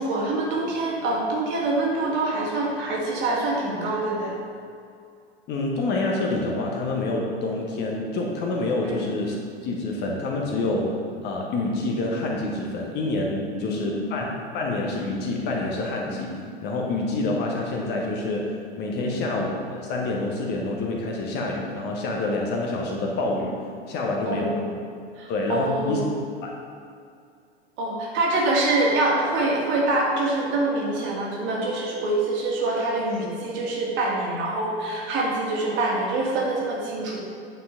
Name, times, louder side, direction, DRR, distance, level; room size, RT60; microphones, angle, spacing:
voice 1, 0.0-4.3 8.8-9.1 13.5-14.2 19.0-19.2 24.3-24.6 25.2-26.1 27.8-37.2, right 2 dB, 35° right, -3 dB, 1.9 m, -25 dB
voice 2, 5.5-9.4 9.6-16.3 16.6-23.6 23.9-24.6 25.3-26.0 26.4-26.5, left 2 dB, 30° left, -1 dB, 1.2 m, -27 dB
9.3 x 5.8 x 3.7 m, 2.4 s
figure-of-eight pair, 95°, 32 cm